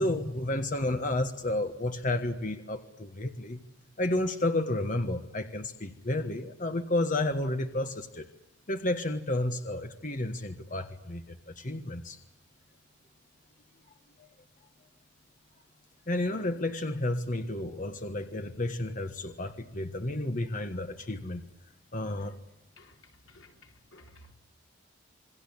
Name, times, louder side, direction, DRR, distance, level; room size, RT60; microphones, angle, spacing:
voice 1, 0.0-3.6 4.0-8.3 8.7-12.2 14.2-14.3 16.1-21.4 21.9-22.4, left 1 dB, 40° left, 1.5 m, -31 dB
voice 2, 22.8-24.4, left 2 dB, 80° left, 3.7 m, -56 dB
28.0 x 22.5 x 8.6 m
head